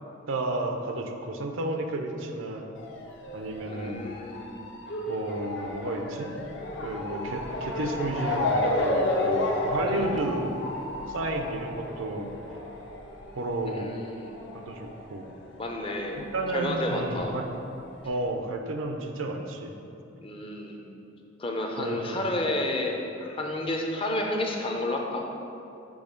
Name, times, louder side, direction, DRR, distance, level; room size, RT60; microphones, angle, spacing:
voice 1, 0.3-2.7 3.3-4.1 5.1-6.3 6.8-10.5 11.1-12.3 13.4-13.9 14.5-15.3 16.2-17.5 18.0-19.7 21.8-22.2, right 2 dB, 75° right, 4 dB, 0.5 m, -32 dB
Motor vehicle (road) / Siren, 2.8-15.8 16.0-17.2 17.9-18.0 18.2-18.3, left 1 dB, 60° left, 0.8 m, -32 dB
voice 2, 3.6-4.6 9.8-10.2 13.7-14.4 15.6-16.2 16.5-17.3 20.2-20.8 21.4-22.9 23.2-25.2, left 1 dB, 25° left, 1 dB, 0.5 m, -31 dB
6.3 x 3.1 x 5.1 m, 2.7 s
head